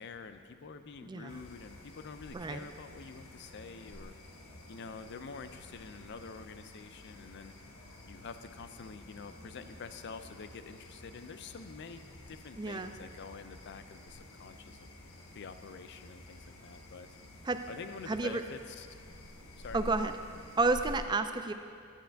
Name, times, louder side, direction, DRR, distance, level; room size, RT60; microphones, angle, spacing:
voice 1, 0.0-4.1 4.7-7.5 8.1-12.0 12.3-14.9 15.3-17.1 17.7-18.9 19.6-19.8, left 5 dB, 55° left, 10 dB, 0.5 m, -47 dB
voice 2, 1.1-1.4 2.3-2.6 12.6-12.9 17.5-17.6 18.1-18.4 19.7-20.1 20.6-21.5, right 3 dB, 20° right, 9 dB, 0.4 m, -30 dB
sound 1, 1.3-21.0, left 1 dB, 85° left, 1.2 m, -51 dB
10.0 x 10.0 x 3.4 m, 2.2 s
head